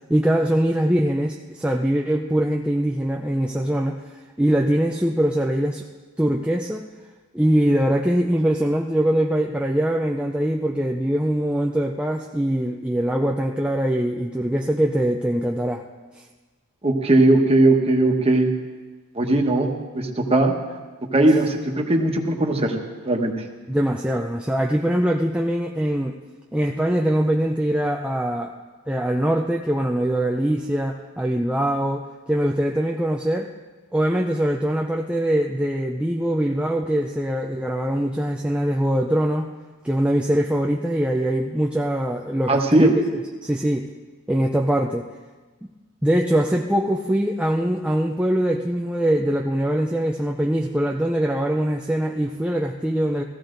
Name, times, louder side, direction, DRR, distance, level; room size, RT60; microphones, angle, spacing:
voice 1, 0.1-5.8 6.2-6.9 7.3-15.8 23.7-26.2 26.5-28.5 28.9-33.5 33.9-39.5 39.8-43.0 43.4-43.9 44.3-45.1 46.0-53.2, right 1 dB, 5° right, 1 dB, 0.5 m, -22 dB
voice 2, 16.8-18.5 19.1-20.6 21.1-22.7 23.0-23.3 42.5-42.9, right 2 dB, 25° right, 2 dB, 1.3 m, -18 dB
15.5 x 15.0 x 3.9 m, 1.3 s
head